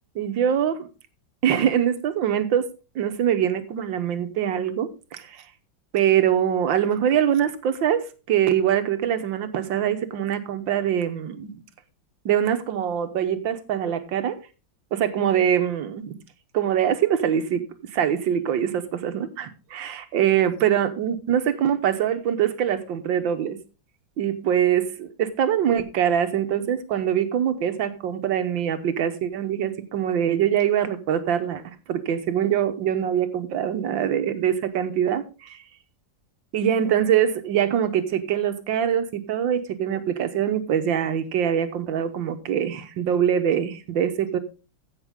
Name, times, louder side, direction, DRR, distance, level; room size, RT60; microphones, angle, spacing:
voice 1, 0.2-0.9 1.4-2.7 3.0-5.4 5.9-11.6 12.3-14.4 14.9-16.2 16.5-17.6 17.9-23.6 24.2-35.6 36.5-44.4, right 9 dB, 80° right, 1.7 m, -23 dB
15.5 x 6.2 x 3.6 m
omnidirectional pair, 2.1 m